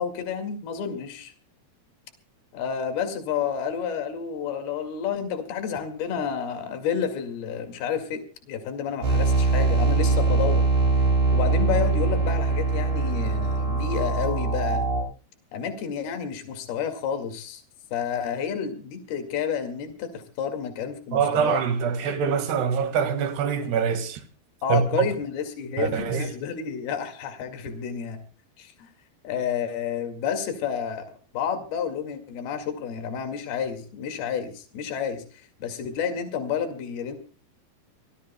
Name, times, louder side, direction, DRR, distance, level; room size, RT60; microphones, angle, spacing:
voice 1, 0.0-1.3 2.5-8.2 8.5-10.6 11.3-14.9 15.5-17.6 17.9-21.6 24.6-28.2 28.6-28.9 29.2-35.2 35.6-37.1, left 7 dB, 75° left, 4.0 m, -30 dB
sound 1, 9.0-15.0, right 3 dB, 70° right, 7.7 m, -22 dB
voice 2, 21.1-24.2 24.7-25.1 25.8-26.3, right 7 dB, 85° right, 3.8 m, -24 dB
26.5 x 18.5 x 2.2 m
omnidirectional pair, 4.6 m